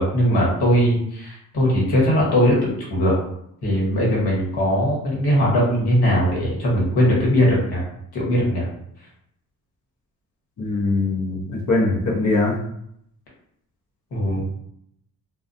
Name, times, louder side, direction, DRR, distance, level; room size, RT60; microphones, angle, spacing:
voice 1, 0.0-3.1 3.6-7.8 8.1-8.7 14.1-14.4, equal, 75° left, -5 dB, 1.3 m, -20 dB
voice 2, 10.6-12.5, left 2 dB, 50° left, -2 dB, 0.9 m, -21 dB
2.3 x 2.2 x 2.6 m, 0.71 s
cardioid pair, 70°, 39 cm